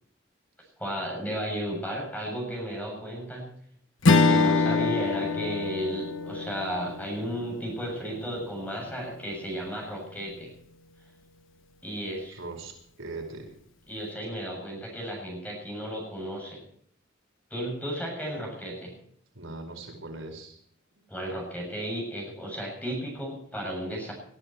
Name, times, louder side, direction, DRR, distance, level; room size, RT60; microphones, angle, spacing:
voice 1, 0.8-3.5 4.2-10.5 11.8-12.4 13.9-16.6 17.5-18.9 21.1-24.1, equal, 10° left, -1 dB, 7.6 m, -34 dB
Strum, 4.0-8.7, left 3 dB, 80° left, 1.3 m, -25 dB
voice 2, 12.3-13.5 18.3-18.4 19.3-20.6 20.9-21.1, right 2 dB, 85° right, 3 dB, 4.8 m, -40 dB
21.5 x 12.5 x 4.6 m, 0.65 s
head